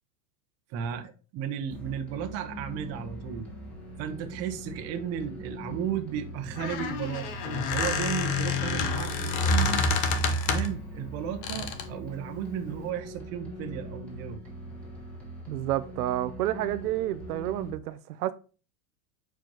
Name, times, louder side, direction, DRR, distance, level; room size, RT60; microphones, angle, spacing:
voice 1, 0.7-3.5 4.0-9.9 10.5-14.4, right 9 dB, 35° right, 0.9 m, -34 dB
sound 1, 1.7-17.7, equal, 5° left, 1.7 m, -42 dB
Squeak, 6.4-10.8 11.4-11.9, left 3 dB, 20° left, 0.3 m, -28 dB
voice 2, 15.5-18.3, right 14 dB, 80° right, 0.6 m, -30 dB
6.9 x 4.6 x 3.0 m
supercardioid pair, 140°, 45 cm